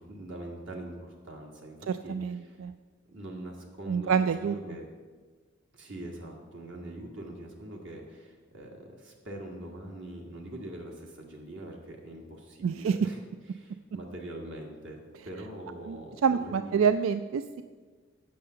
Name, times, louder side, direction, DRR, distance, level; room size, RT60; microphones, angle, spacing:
voice 1, 0.0-1.8 2.0-2.2 2.4-2.6 3.1-4.2 4.4-4.8 5.7-13.2 13.5-16.8, right 1 dB, 65° right, 0 dB, 1.6 m, -43 dB
voice 2, 1.9-2.7 3.9-4.6 12.6-13.0 15.9-17.6, right 6 dB, 85° right, 11 dB, 0.3 m, -27 dB
8.6 x 6.4 x 6.7 m, 1.5 s
head